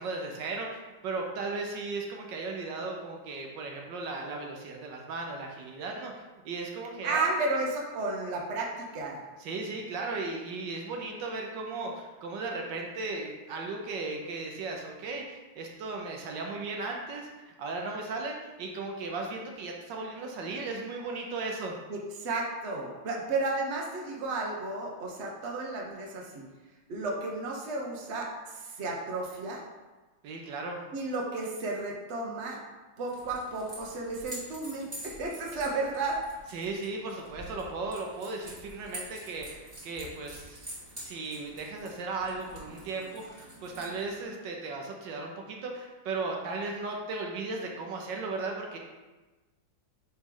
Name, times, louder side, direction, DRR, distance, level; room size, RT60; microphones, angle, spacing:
voice 1, 0.0-6.1 6.4-7.6 9.4-21.8 30.2-30.8 36.5-40.7 41.0-48.8, right 3 dB, 75° right, 1 dB, 1.4 m, -36 dB
voice 2, 7.0-9.2 21.9-26.4 26.9-29.6 30.9-32.6 33.0-36.2, right 3 dB, 45° right, -1 dB, 1.0 m, -33 dB
sound 1, 33.1-44.2, right 1 dB, 25° right, 1.7 m, -47 dB
9.1 x 3.1 x 3.8 m, 1.2 s
omnidirectional pair, 2.1 m